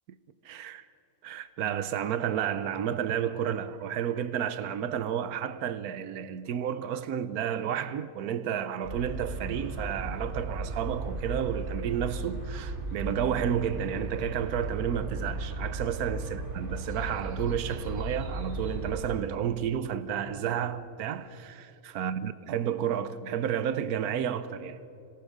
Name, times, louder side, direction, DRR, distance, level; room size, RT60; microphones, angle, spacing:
voice 1, 0.4-0.8 1.2-24.8, right 9 dB, 85° right, 1.3 m, -31 dB
sound 1, 8.8-19.2, right 2 dB, 50° right, 3.1 m, -36 dB
26.5 x 18.5 x 6.3 m
omnidirectional pair, 1.6 m